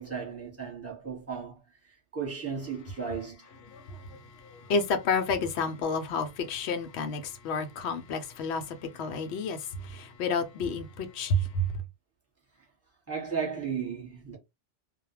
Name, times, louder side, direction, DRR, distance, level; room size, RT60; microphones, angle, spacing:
voice 1, 0.0-1.6 2.1-3.5 13.1-14.4, right 6 dB, 15° right, 1.0 m, -35 dB
voice 2, 3.7-11.7, left 3 dB, 70° left, 0.8 m, -30 dB
2.2 x 2.1 x 3.0 m
omnidirectional pair, 1.2 m